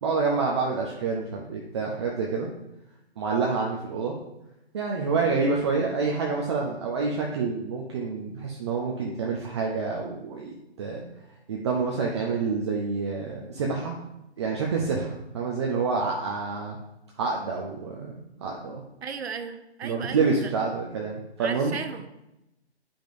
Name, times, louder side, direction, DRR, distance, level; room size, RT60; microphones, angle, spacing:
voice 1, 0.0-2.5 3.2-4.2 4.7-11.0 11.5-13.9 14.4-16.8 17.2-18.8 19.8-21.8, right 4 dB, 25° right, -1 dB, 0.5 m, -28 dB
voice 2, 19.0-20.5 21.4-22.1, right 6 dB, 70° right, 8 dB, 0.7 m, -36 dB
8.7 x 5.2 x 2.6 m, 0.90 s
figure-of-eight pair, 140°, 34 cm